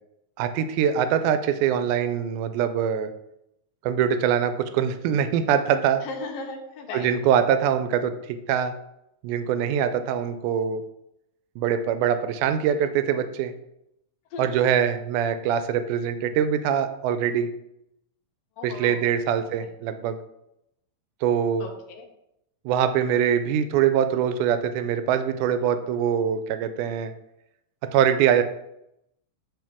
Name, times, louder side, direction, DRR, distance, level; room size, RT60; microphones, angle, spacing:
voice 1, 0.4-3.1 3.8-6.0 6.9-8.7 9.2-10.8 11.6-13.5 14.4-17.5 18.6-20.2 21.2-21.7 22.7-27.1 27.9-28.4, right 8 dB, 80° right, 10 dB, 1.9 m, -23 dB
voice 2, 6.0-7.1 14.3-14.6 18.6-19.0 19.6-19.7 21.6-22.0, left 3 dB, 85° left, 1 dB, 1.3 m, -36 dB
8.6 x 3.2 x 3.6 m, 0.81 s
omnidirectional pair, 3.9 m